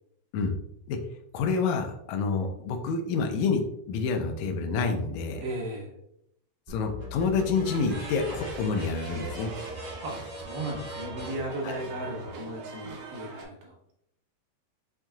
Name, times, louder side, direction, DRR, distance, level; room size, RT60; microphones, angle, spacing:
voice 1, 1.3-3.6 3.9-5.4 6.7-9.5 11.6-11.7, left 4 dB, 80° left, 4 dB, 1.8 m, -28 dB
voice 2, 5.4-5.9 10.0-13.8, right 1 dB, 90° right, -1 dB, 2.8 m, -36 dB
sound 1, 6.7-12.3, equal, 25° right, 0.9 m, -40 dB
sound 2, 7.6-13.4, right 3 dB, 70° right, 1.5 m, -43 dB
7.3 x 2.7 x 2.3 m, 0.77 s
omnidirectional pair, 3.7 m